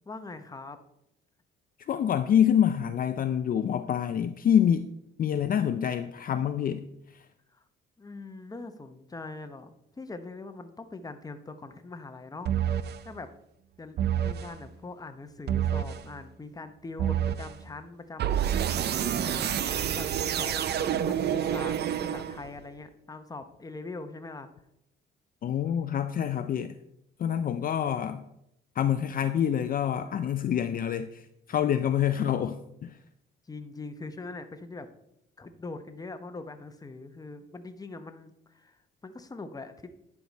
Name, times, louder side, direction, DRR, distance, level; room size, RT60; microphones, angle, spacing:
voice 1, 0.1-0.8 7.5-7.6 8.0-12.6 13.0-13.3 13.8-18.4 18.7-21.8 22.0-24.5 30.0-30.5 33.5-34.9 35.4-39.9, left 3 dB, 20° left, 0.8 m, -42 dB
voice 2, 1.9-4.9 5.2-6.9 25.4-26.7 27.2-28.2 28.8-33.0, left 9 dB, 45° left, 0.4 m, -26 dB
sound 1, 12.4-13.0 14.0-14.5 15.5-16.0 17.0-17.5 18.2-22.6, right 9 dB, 55° right, 0.5 m, -28 dB
10.5 x 4.8 x 4.1 m
cardioid pair, 90°, 20 cm